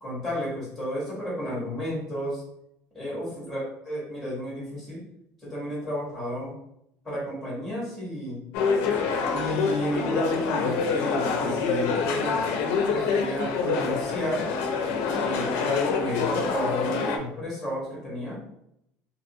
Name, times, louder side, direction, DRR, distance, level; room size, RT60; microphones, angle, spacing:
voice 1, 0.0-2.4 2.9-5.0 5.4-6.6 7.0-8.4 9.3-12.4 12.8-14.5 15.1-18.4, equal, ahead, -6 dB, 1.1 m, -32 dB
sound 1, 8.5-17.2, left 5 dB, 60° left, 0.4 m, -26 dB
2.8 x 2.6 x 2.7 m, 0.77 s
cardioid pair, 175°, 5 cm